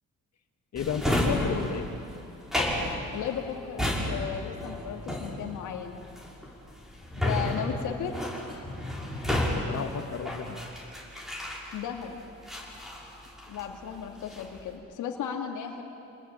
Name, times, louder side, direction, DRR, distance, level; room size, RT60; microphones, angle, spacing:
voice 1, 0.7-1.9 7.8-7.9 9.5-10.6, left 7 dB, 60° left, 6 dB, 2.5 m, -33 dB
Drawer open or close, 0.8-12.0 12.5-13.7 14.1-14.6, left 1 dB, ahead, 6.0 m, -32 dB
voice 2, 3.1-6.0 7.2-8.1 11.7-12.2 13.5-15.8, left 8 dB, 85° left, 2 dB, 2.5 m, -35 dB
28.5 x 20.0 x 9.0 m, 2.9 s
cardioid pair, 90°, 30 cm